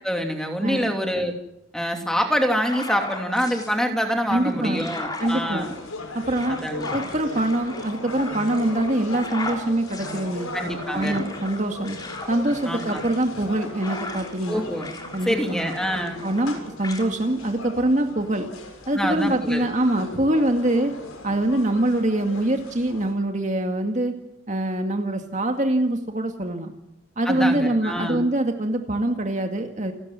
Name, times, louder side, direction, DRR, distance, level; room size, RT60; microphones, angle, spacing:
voice 1, 0.0-1.3 1.7-5.8 6.5-6.9 10.5-11.2 12.6-13.0 14.5-14.9 15.2-16.2 18.9-19.7 27.2-28.2, equal, 5° left, 3 dB, 2.9 m, -26 dB
sound 1, 2.5-3.7 4.2-14.5 14.8-16.5 16.8-17.1, left 2 dB, 20° left, 3.5 m, -36 dB
voice 2, 4.3-4.9 5.2-5.7 6.1-6.6 6.9-10.5 10.9-12.0 12.3-14.6 15.1-15.4 16.2-18.5 18.9-20.9 21.2-24.1 24.5-26.7 27.2-29.9, right 1 dB, 35° right, 4 dB, 2.1 m, -24 dB
sound 2, 5.2-23.1, left 2 dB, 85° left, 6.8 m, -38 dB
29.5 x 14.0 x 9.9 m, 0.85 s
head